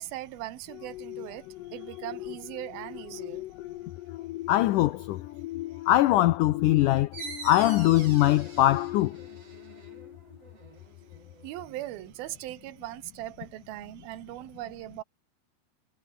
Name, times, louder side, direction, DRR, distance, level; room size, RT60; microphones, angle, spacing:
voice 1, 0.0-3.5 5.7-5.8 11.4-15.0, right 16 dB, 75° right, 2.8 m, -40 dB
sound 1, 0.7-10.6 11.0-11.2, left 16 dB, 70° left, 2.2 m, -40 dB
voice 2, 4.5-5.2 5.9-7.1 7.4-9.2, left 15 dB, 90° left, 1.8 m, -22 dB
sound 2, 7.1-12.4, right 4 dB, 40° right, 6.1 m, -45 dB
omnidirectional pair, 4.5 m